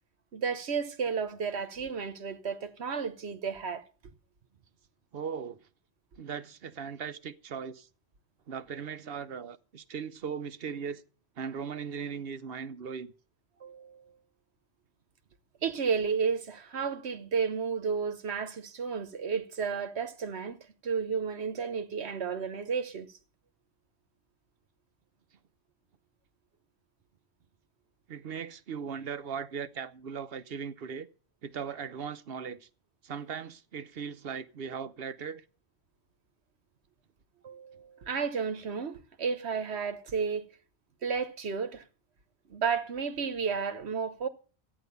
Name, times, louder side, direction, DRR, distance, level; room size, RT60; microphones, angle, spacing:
voice 1, 0.3-3.8 13.6-14.0 15.6-23.1 37.4-40.4 41.0-41.8 42.5-44.3, right 6 dB, 85° right, 1.4 m, -32 dB
voice 2, 5.1-5.6 6.2-7.9 8.5-11.0 11.4-13.1 28.1-31.1 31.4-32.7 33.0-35.4, right 6 dB, 65° right, 1.1 m, -38 dB
13.5 x 10.0 x 6.7 m
omnidirectional pair, 1.1 m